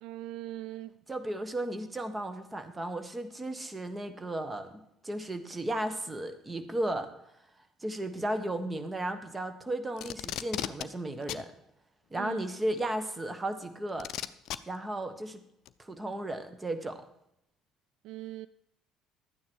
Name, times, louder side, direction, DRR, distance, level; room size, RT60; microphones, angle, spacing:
voice 1, 0.0-1.0 12.2-12.5 18.0-18.5, right 15 dB, 65° right, 0.3 m, -40 dB
voice 2, 1.1-7.1 7.8-11.5 12.1-14.1 14.7-15.4 15.8-17.0, right 1 dB, 20° right, 1.5 m, -34 dB
Packing tape duct tape, 10.0-10.9 11.3-11.4 12.8-12.9 14.0-14.6 15.7-15.8, left 12 dB, 60° left, 0.5 m, -35 dB
12.0 x 9.4 x 4.7 m
hypercardioid pair, 55°, 0 cm